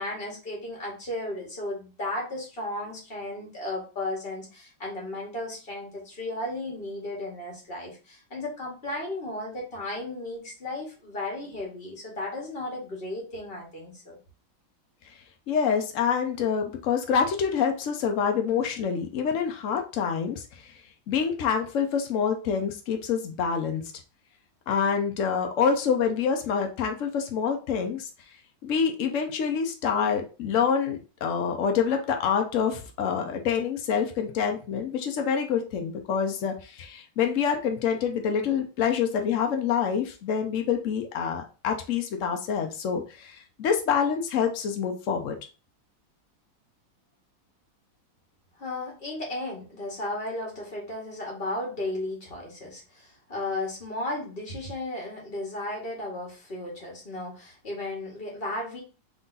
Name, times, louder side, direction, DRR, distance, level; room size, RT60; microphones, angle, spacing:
voice 1, 0.0-14.2 48.6-58.8, left 1 dB, 30° left, -2 dB, 1.8 m, -34 dB
voice 2, 15.5-20.7 21.1-23.8 24.7-28.1 28.6-45.3, left 7 dB, 90° left, 4 dB, 0.6 m, -26 dB
3.8 x 3.4 x 3.9 m, 0.34 s
omnidirectional pair, 2.2 m